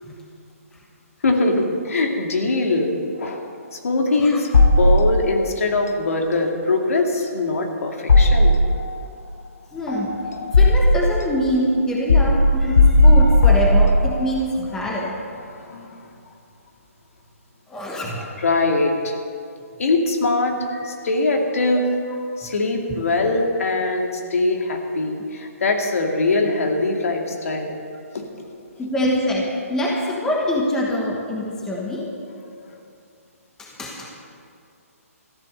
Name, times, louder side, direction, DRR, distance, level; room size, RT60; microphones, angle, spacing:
voice 1, 1.2-3.4 3.7-8.6 15.5-16.1 18.4-19.1 19.8-20.6 20.8-21.8 22.4-27.8 28.1-28.5 32.5-32.6, left 2 dB, 70° left, 2 dB, 2.2 m, -22 dB
sound 1, 4.5-5.4 8.1-9.0 9.9-11.2 12.1-14.3, left 1 dB, 90° left, 1.4 m, -15 dB
voice 2, 9.7-10.1 10.5-15.1 17.7-18.3 20.7-20.8 28.8-32.1 33.6-34.1, equal, 5° left, -3 dB, 1.3 m, -24 dB
14.0 x 11.0 x 6.6 m, 2.3 s
hypercardioid pair, 165°, 8 cm